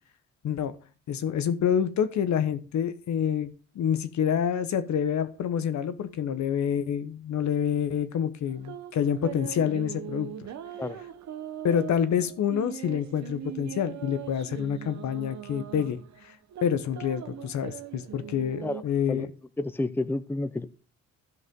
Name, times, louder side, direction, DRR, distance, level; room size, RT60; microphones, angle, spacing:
voice 1, 1.1-3.5 3.7-10.3 11.6-16.3 16.6-19.3, left 8 dB, 65° left, 11 dB, 1.2 m, -27 dB
sound 1, 8.5-18.8, right 9 dB, 65° right, 1.1 m, -41 dB
voice 2, 19.6-20.7, left 2 dB, 5° left, 12 dB, 0.7 m, -30 dB
15.0 x 5.5 x 3.7 m, 0.37 s
cardioid pair, 90°, 30 cm